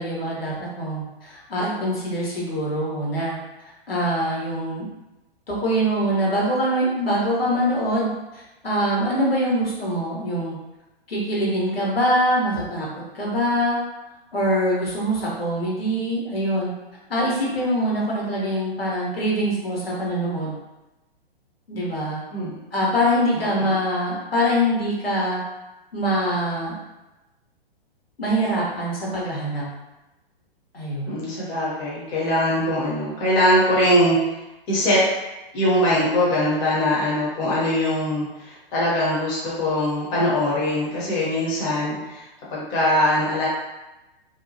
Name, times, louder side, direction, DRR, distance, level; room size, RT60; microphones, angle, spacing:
voice 1, 0.0-3.3 3.9-4.8 5.5-10.6 11.1-12.9 13.1-13.8 14.3-16.7 17.1-20.6 21.7-22.2 22.7-25.4 25.9-26.7 28.2-29.6 30.7-31.1, equal, 75° left, -5 dB, 1.1 m, -24 dB
voice 2, 22.3-22.8 23.6-23.7 31.1-34.2 34.7-35.0 35.5-43.5, left 1 dB, 20° left, -7 dB, 0.7 m, -22 dB
2.7 x 2.2 x 2.8 m, 1.0 s
figure-of-eight pair, 120°, 30 cm